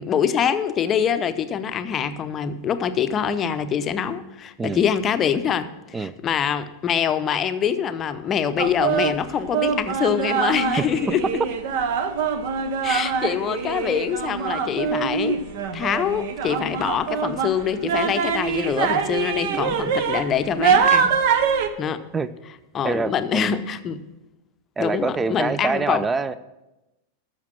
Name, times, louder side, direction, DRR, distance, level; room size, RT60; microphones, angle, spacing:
voice 1, 0.0-11.2 12.8-15.4 15.7-21.1 21.8-22.0 22.7-24.0 24.8-26.0, left 8 dB, 25° left, 11 dB, 0.7 m, -24 dB
sound 1, 8.6-21.7, right 6 dB, 50° right, 0.8 m, -24 dB
voice 2, 10.8-11.3 19.5-19.6 22.1-22.3 22.8-23.5 24.8-26.4, right 4 dB, 15° right, 16 dB, 0.5 m, -26 dB
13.0 x 6.6 x 6.1 m, 1.0 s
figure-of-eight pair, 90°, 0 cm